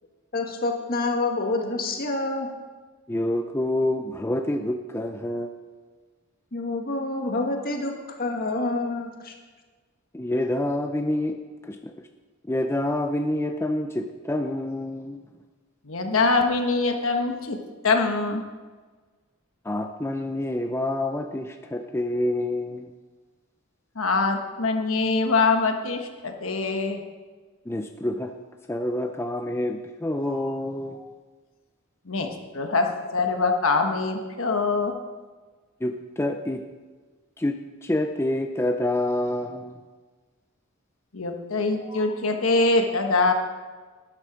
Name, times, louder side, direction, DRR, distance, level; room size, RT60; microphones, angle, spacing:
voice 1, 0.3-2.5 6.5-9.3, left 2 dB, 45° left, 2 dB, 1.8 m, -27 dB
voice 2, 3.1-5.5 10.1-11.4 11.6-12.1 12.5-15.2 19.6-22.9 27.7-28.3 28.7-31.0 35.8-36.6 37.4-39.8, left 1 dB, 10° left, 4 dB, 0.5 m, -27 dB
voice 3, 15.9-17.6 17.8-18.4 24.0-27.0 32.1-32.3 32.5-34.9 41.1-43.3, left 3 dB, 70° left, 4 dB, 1.3 m, -23 dB
12.5 x 10.5 x 5.1 m, 1.4 s
head